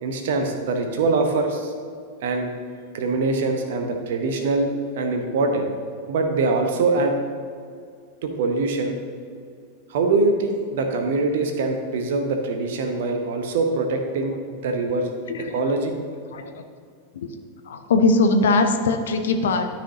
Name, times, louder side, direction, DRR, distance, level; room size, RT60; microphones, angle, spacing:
voice 1, 0.0-1.7 2.2-2.5 2.9-4.7 5.0-5.7 6.1-7.2 8.2-9.0 9.9-15.1 15.5-15.9, right 3 dB, 55° right, 5 dB, 1.0 m, -23 dB
voice 2, 15.3-15.7 16.3-16.6 17.1-17.3 17.7-19.7, left 3 dB, 60° left, 6 dB, 0.7 m, -21 dB
12.5 x 5.1 x 2.9 m, 2.2 s
figure-of-eight pair, 90°, 0 cm